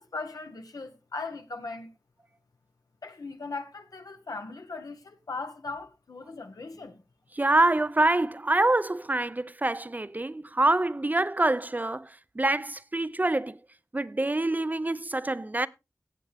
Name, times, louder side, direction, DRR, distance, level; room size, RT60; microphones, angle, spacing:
voice 1, 0.0-1.9 3.0-7.0, left 3 dB, 85° left, 1.4 m, -39 dB
voice 2, 7.4-12.1 12.4-13.6 13.9-15.7, right 2 dB, 30° right, 0.5 m, -25 dB
16.5 x 7.6 x 3.4 m
wide cardioid pair, 60°, 6 cm